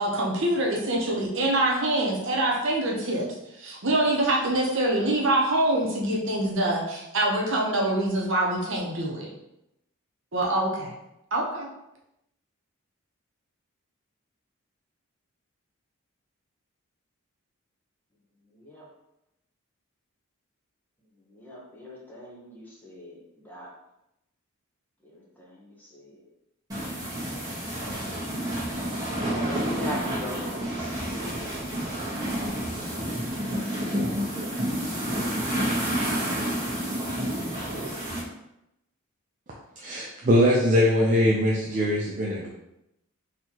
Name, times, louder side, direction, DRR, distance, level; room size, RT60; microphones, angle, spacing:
voice 1, 0.0-9.3 10.3-10.9 11.3-11.7, right 1 dB, 60° right, -2 dB, 0.9 m, -25 dB
voice 2, 18.5-18.9 21.2-23.7 25.0-26.3 27.1-27.2 29.0-30.9, left 1 dB, 10° left, -5 dB, 0.8 m, -41 dB
sound 1, 26.7-38.2, right 1 dB, 15° right, 1.2 m, -29 dB
voice 3, 39.8-42.5, equal, 35° right, -4 dB, 0.5 m, -22 dB
4.1 x 3.0 x 2.9 m, 0.86 s
head